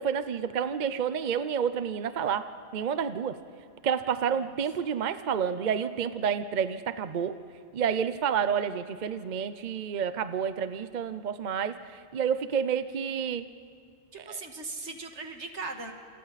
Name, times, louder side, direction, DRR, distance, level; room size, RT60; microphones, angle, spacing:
voice 1, 0.0-2.5 2.7-3.4 3.8-7.4 7.7-13.5 14.3-14.4, right 7 dB, 45° right, 11 dB, 0.8 m, -29 dB
voice 2, 14.1-15.9, right 3 dB, 80° right, 4 dB, 2.1 m, -39 dB
30.0 x 28.0 x 4.2 m, 2.4 s
omnidirectional pair, 1.2 m